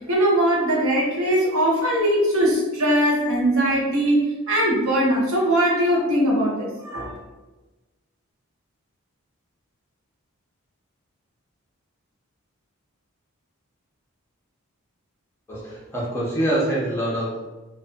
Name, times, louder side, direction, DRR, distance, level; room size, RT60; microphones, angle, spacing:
voice 1, 0.1-7.2, right 1 dB, 75° right, -4 dB, 0.8 m, -21 dB
voice 2, 15.5-17.4, right 1 dB, 10° left, -6 dB, 0.6 m, -25 dB
2.5 x 2.5 x 2.3 m, 1.1 s
head